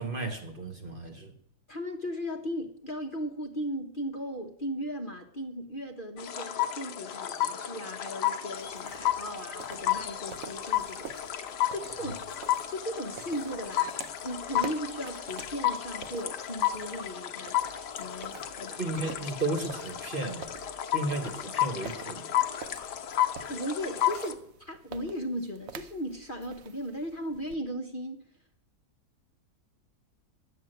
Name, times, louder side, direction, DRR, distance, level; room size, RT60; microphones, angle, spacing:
voice 1, 0.0-1.3 18.8-20.6 20.9-22.3, right 2 dB, 35° right, 5 dB, 1.3 m, -34 dB
voice 2, 1.7-12.2 12.7-17.6 18.0-18.8 23.5-28.3, equal, 35° left, 4 dB, 1.1 m, -37 dB
sound 1, 6.2-24.3, left 12 dB, 85° left, 1.5 m, -32 dB
sound 2, 8.5-27.6, right 7 dB, 60° right, 1.2 m, -48 dB
11.0 x 8.9 x 7.8 m, 0.69 s
omnidirectional pair, 1.7 m